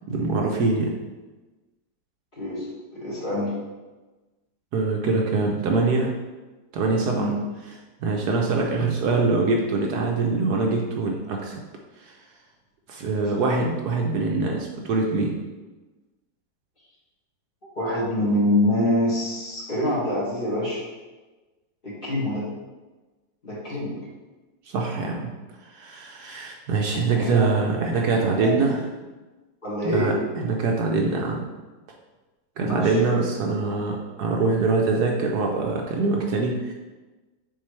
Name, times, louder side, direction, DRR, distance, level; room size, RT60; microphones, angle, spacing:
voice 1, 0.1-0.9 4.7-6.1 6.7-7.3 8.0-11.5 12.0-12.1 12.9-15.3 24.7-25.3 25.7-28.8 29.8-31.4 32.6-36.7, right 3 dB, 70° right, 0 dB, 1.2 m, -24 dB
voice 2, 2.3-3.5 7.2-7.4 8.5-8.6 13.2-13.3 17.8-20.8 21.8-22.5 23.4-24.0 27.1-27.5 28.3-28.6 29.6-30.2 32.6-33.0, left 1 dB, 30° left, -8 dB, 1.9 m, -25 dB
7.2 x 4.4 x 3.2 m, 1.2 s
omnidirectional pair, 1.9 m